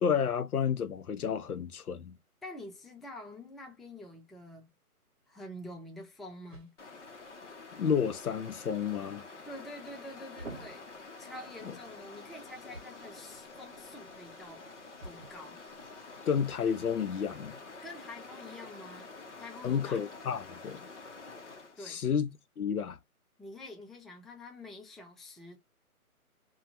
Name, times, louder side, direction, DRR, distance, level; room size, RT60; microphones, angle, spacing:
voice 1, 0.0-2.2 7.8-9.2 11.7-11.8 16.3-17.6 19.6-20.8 21.9-23.0, left 7 dB, 75° left, 0.7 m, -31 dB
voice 2, 2.4-4.7 5.3-6.7 9.4-10.9 11.2-14.6 15.0-15.6 17.8-19.1 19.4-20.0 21.8-22.0 23.4-25.6, left 1 dB, ahead, 0.3 m, -47 dB
sound 1, 5.2-18.6, right 2 dB, 35° right, 0.9 m, -55 dB
Stream, 6.8-21.8, left 3 dB, 50° left, 0.9 m, -48 dB
3.2 x 2.3 x 2.6 m
hypercardioid pair, 170°, 44 cm